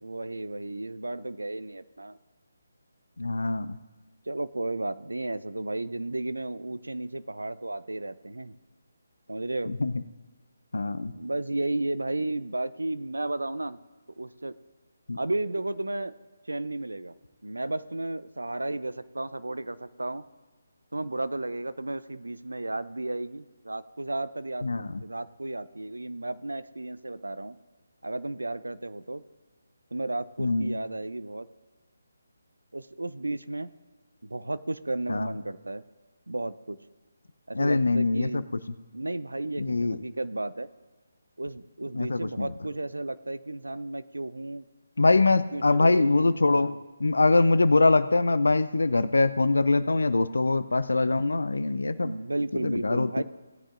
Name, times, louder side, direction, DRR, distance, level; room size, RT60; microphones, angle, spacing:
voice 1, 0.0-2.2 4.3-8.5 9.3-9.7 11.1-13.8 14.2-14.5 15.2-16.1 16.5-17.1 17.4-20.2 20.9-24.7 25.0-27.6 28.0-29.2 29.9-31.5 32.7-33.7 34.2-35.8 36.3-36.8 37.5-38.5 38.9-40.7 41.4-44.7 45.5-46.8 52.0-53.2, right 2 dB, 80° right, 14 dB, 0.5 m, -33 dB
voice 2, 3.2-3.8 9.7-10.0 10.7-11.1 15.1-15.2 24.6-25.0 30.4-30.8 35.1-35.4 37.5-38.4 39.6-40.0 41.9-42.5 45.0-46.7 47.0-52.1 52.6-53.2, left 3 dB, 70° left, 14 dB, 0.5 m, -23 dB
18.0 x 9.9 x 2.5 m, 1.3 s
figure-of-eight pair, 145°, 0 cm